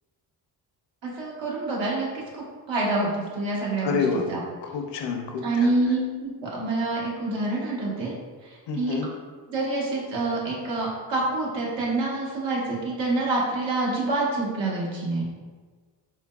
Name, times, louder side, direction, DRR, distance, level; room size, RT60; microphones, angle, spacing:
voice 1, 1.0-4.0 4.3-4.4 5.4-8.1 8.4-8.9 9.5-15.3, right 2 dB, 70° right, -4 dB, 1.1 m, -27 dB
voice 2, 3.8-4.3 4.6-5.7 8.7-9.1, left 5 dB, 65° left, 3 dB, 0.6 m, -28 dB
3.8 x 2.2 x 2.3 m, 1.4 s
cardioid pair, 70°, 45 cm